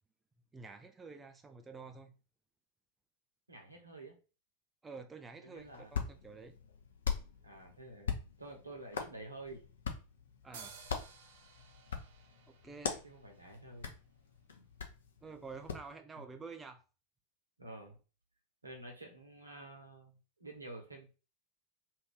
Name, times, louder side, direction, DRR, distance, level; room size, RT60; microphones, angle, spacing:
voice 1, 0.5-2.1 4.8-6.6 10.4-10.8 12.5-13.0 15.2-16.8, right 4 dB, 15° right, 0.4 m, -49 dB
voice 2, 3.5-4.2 5.4-5.9 7.4-9.6 13.0-13.9 16.1-16.2 17.6-18.0 18.6-21.1, right 2 dB, 80° right, 1.0 m, -50 dB
Hands, 5.6-15.9, left 6 dB, 65° left, 0.6 m, -42 dB
sound 1, 10.5-14.1, right 6 dB, 55° right, 0.6 m, -56 dB
2.8 x 2.6 x 3.6 m
figure-of-eight pair, 90°, 0 cm